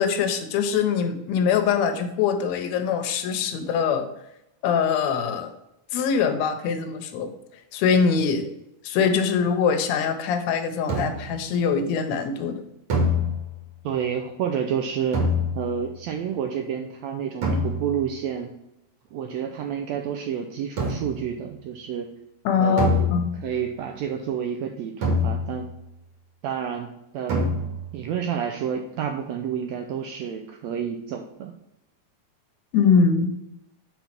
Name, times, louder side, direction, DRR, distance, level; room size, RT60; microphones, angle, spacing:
voice 1, 0.0-4.1 4.6-5.5 5.9-7.3 7.7-8.5 8.8-12.6 22.5-23.3 32.7-33.3, left 6 dB, 75° left, 7 dB, 1.9 m, -23 dB
sound 1, 10.9-11.4 12.9-13.8 15.1-15.9 17.4-18.1 20.8-21.3 22.8-23.6 25.0-25.8 27.3-28.0, left 1 dB, 50° right, 2.4 m, -26 dB
voice 2, 13.8-15.2 15.5-18.5 19.1-22.1 22.6-23.1 23.4-25.7 26.4-27.5 27.9-31.5, right 8 dB, 80° right, 3 dB, 1.6 m, -29 dB
5.2 x 4.5 x 5.8 m, 0.87 s
omnidirectional pair, 3.5 m